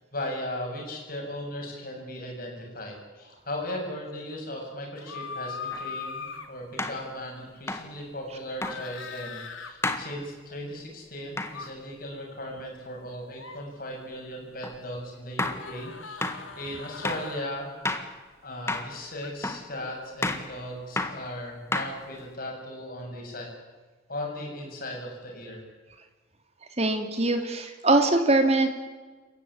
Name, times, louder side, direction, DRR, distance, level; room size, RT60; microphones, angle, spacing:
voice 1, 0.1-17.7 18.4-23.5 24.1-25.6, left 1 dB, 45° left, 0 dB, 7.8 m, -37 dB
sound 1, 5.0-6.5 8.6-9.7 11.4-11.7 13.3-13.6 15.6-17.5 19.2-19.3, left 5 dB, 80° left, 2.8 m, -39 dB
sound 2, 5.7-5.8 6.8-7.0 7.7-7.9 8.6-8.8 9.8-10.1 11.4-11.6 14.6-14.8 15.4-15.6 16.2-16.4 17.0-17.3 17.8-18.1 18.7-18.9 19.4-19.7 20.2-20.5 21.0-21.2 21.7-22.2, left 2 dB, 15° left, 1.7 m, -30 dB
voice 2, 26.8-28.7, right 2 dB, 30° right, 6 dB, 2.7 m, -22 dB
28.5 x 15.5 x 10.0 m, 1.4 s
head